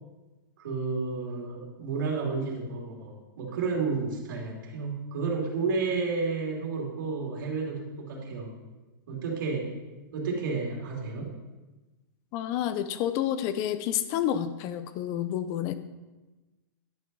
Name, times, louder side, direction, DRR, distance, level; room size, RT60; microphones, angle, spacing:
voice 1, 0.6-8.5 9.1-9.7 10.1-11.3, right 4 dB, 65° right, -2 dB, 2.9 m, -31 dB
voice 2, 12.3-15.7, left 10 dB, 30° left, 12 dB, 0.5 m, -29 dB
10.5 x 5.5 x 5.4 m, 1.2 s
supercardioid pair, 160°, 11 cm